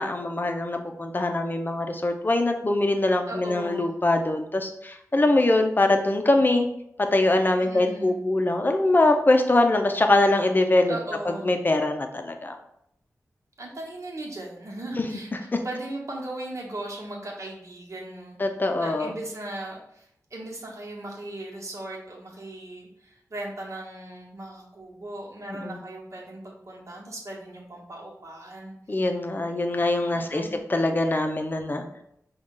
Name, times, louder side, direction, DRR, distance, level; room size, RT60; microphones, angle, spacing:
voice 1, 0.0-6.7 7.0-10.9 11.4-12.5 15.0-15.1 18.4-19.1 25.6-25.8 28.9-32.0, left 2 dB, 30° left, 4 dB, 0.6 m, -23 dB
voice 2, 3.3-3.9 7.6-8.1 10.9-11.5 13.6-18.4 18.8-29.0 30.1-30.7, right 1 dB, 55° right, -3 dB, 1.2 m, -38 dB
5.1 x 2.4 x 3.7 m, 0.76 s
wide cardioid pair, 65°, 6 cm